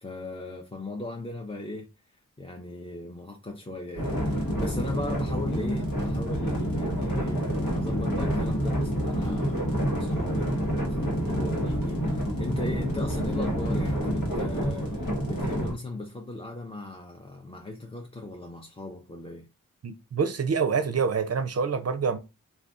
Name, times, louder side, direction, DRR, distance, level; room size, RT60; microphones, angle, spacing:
voice 1, 0.0-1.9 2.4-19.5, left 2 dB, 15° left, 0.5 m, -38 dB
sound 1, 4.0-15.8, equal, 85° left, 1.1 m, -28 dB
voice 2, 19.8-22.2, right 5 dB, 45° right, 0.5 m, -26 dB
2.4 x 2.3 x 3.6 m
cardioid pair, 45°, 34 cm